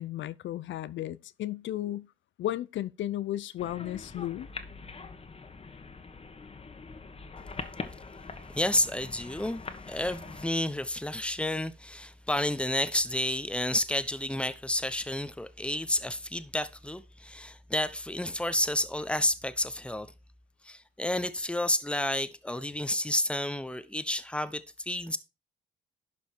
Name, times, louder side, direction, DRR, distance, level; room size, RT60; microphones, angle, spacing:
voice 1, 0.0-2.1 2.4-4.5, left 13 dB, 70° left, 0.6 m, -34 dB
sound 1, 3.6-10.5, left 4 dB, 30° left, 1.6 m, -43 dB
voice 2, 8.5-9.6 9.9-20.1 20.6-25.2, left 1 dB, 5° left, 0.9 m, -30 dB
11.5 x 5.3 x 4.6 m
cardioid pair, 90°, 20 cm